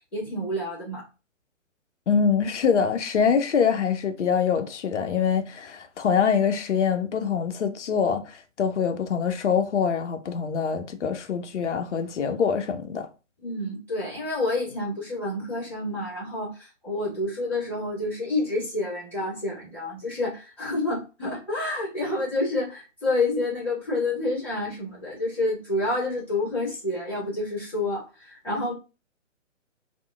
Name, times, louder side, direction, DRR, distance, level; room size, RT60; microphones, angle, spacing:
voice 1, 0.1-1.0 13.4-28.7, left 2 dB, 5° left, 1.3 m, -28 dB
voice 2, 2.1-13.1, left 6 dB, 65° left, 0.5 m, -24 dB
2.8 x 2.1 x 2.2 m
figure-of-eight pair, 130°, 38 cm